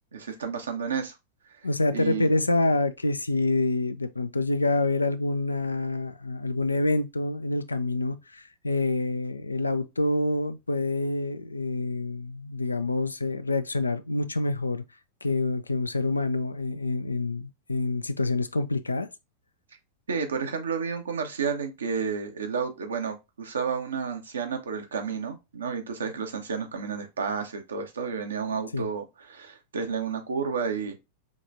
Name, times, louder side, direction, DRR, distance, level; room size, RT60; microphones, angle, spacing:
voice 1, 0.1-1.1 1.6-2.3 20.1-31.0, right 6 dB, 70° right, 0.9 m, -31 dB
voice 2, 1.6-14.8 15.2-19.1 28.7-28.9, left 2 dB, 80° left, 0.4 m, -27 dB
5.1 x 3.2 x 2.6 m
figure-of-eight pair, 90°, 0 cm